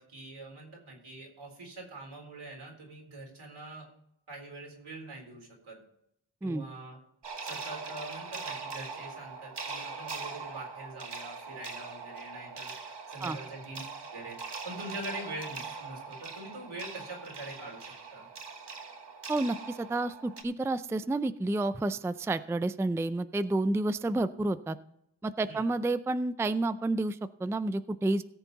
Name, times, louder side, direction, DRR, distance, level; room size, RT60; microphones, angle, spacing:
voice 1, 0.0-3.9 4.3-5.8 6.4-7.0 7.4-12.7 13.1-13.8 14.1-14.4 14.6-18.3 25.4-25.7, right 1 dB, 80° right, 0 dB, 3.9 m, -44 dB
sound 1, 7.2-20.4, right 4 dB, 55° right, 1.5 m, -41 dB
voice 2, 19.3-24.8 25.2-28.2, right 2 dB, 5° right, 13 dB, 0.4 m, -30 dB
17.5 x 7.2 x 4.0 m, 0.75 s
wide cardioid pair, 65°, 48 cm